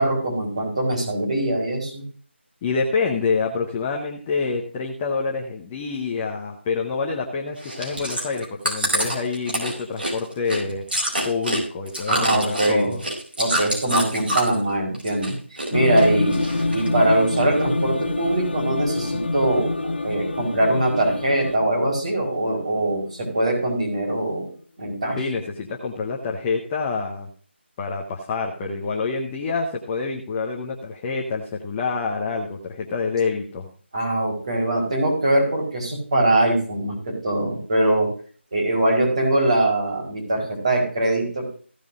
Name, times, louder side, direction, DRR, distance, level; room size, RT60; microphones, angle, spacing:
voice 1, 0.0-2.0 12.1-13.0 13.4-15.4 15.7-16.5 16.7-24.5 24.8-25.2 33.9-38.1 38.5-41.5, right 1 dB, 35° right, -1 dB, 4.6 m, -22 dB
voice 2, 2.6-10.8 11.2-13.0 25.2-27.3 27.8-33.7, left 4 dB, 10° left, 0 dB, 0.6 m, -27 dB
Chewing mastication, 7.6-14.6 14.9-15.7 16.0-16.9 17.4-17.5, right 1 dB, 55° right, 5.0 m, -26 dB
sound 1, 15.7-23.4, left 2 dB, 60° left, 1.0 m, -27 dB
16.0 x 5.3 x 4.8 m, 0.43 s
figure-of-eight pair, 175°, 7 cm